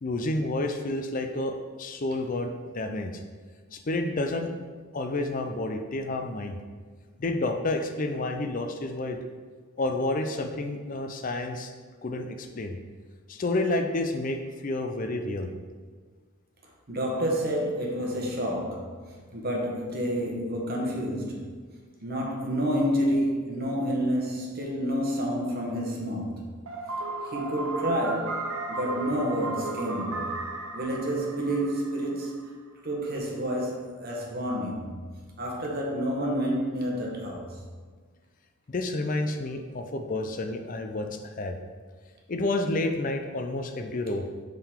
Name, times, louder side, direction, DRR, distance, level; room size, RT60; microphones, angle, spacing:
voice 1, 0.0-3.1 3.7-4.5 4.9-6.6 7.2-9.2 9.8-11.7 12.0-12.8 13.3-15.5 38.7-41.6 42.3-44.3, left 2 dB, 40° left, 6 dB, 0.4 m, -30 dB
voice 2, 16.9-21.6 22.0-26.6 27.2-28.4 28.7-30.3 30.7-32.5 32.8-34.9 35.4-37.6, equal, 45° right, -1 dB, 1.0 m, -29 dB
sound 1, 26.7-32.5, right 3 dB, 80° right, 0.7 m, -35 dB
7.1 x 3.8 x 3.6 m, 1.5 s
head